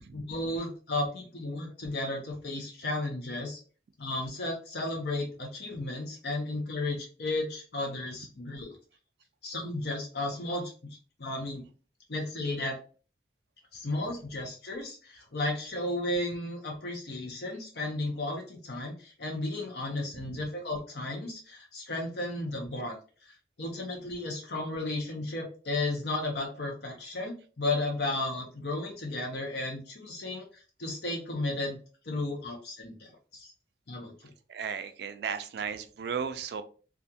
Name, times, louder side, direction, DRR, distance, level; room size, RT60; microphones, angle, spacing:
voice 1, 0.1-3.6 4.0-8.8 9.4-11.6 12.1-12.8 13.7-31.8 32.0-33.5 33.9-34.3, left 2 dB, 65° left, 0 dB, 0.7 m, -34 dB
voice 2, 34.5-36.6, right 6 dB, 65° right, 10 dB, 0.3 m, -34 dB
2.4 x 2.3 x 2.7 m, 0.38 s
head